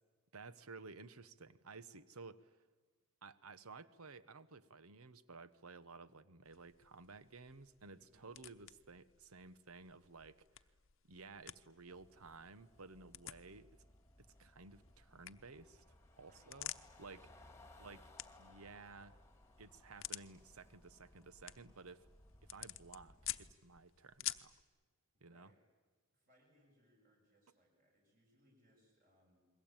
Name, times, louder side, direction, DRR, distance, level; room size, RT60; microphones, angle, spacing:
voice 1, 0.3-2.6 3.2-10.6 11.1-13.8 14.2-15.8 16.2-16.7 17.0-17.3 17.8-19.2 19.6-22.1 22.4-24.6 25.2-25.5, right 4 dB, 85° right, 14 dB, 1.1 m, -55 dB
sound 1, 6.4-24.6, left 14 dB, 60° left, 0.9 m, -52 dB
voice 2, 8.0-8.3 16.2-16.5 17.1-17.7 25.1-25.6 26.1-29.5, equal, 40° right, -1 dB, 7.2 m, -72 dB
sound 2, 11.9-23.5, left 1 dB, 15° left, 1.7 m, -63 dB
29.5 x 22.0 x 8.9 m, 1.3 s
head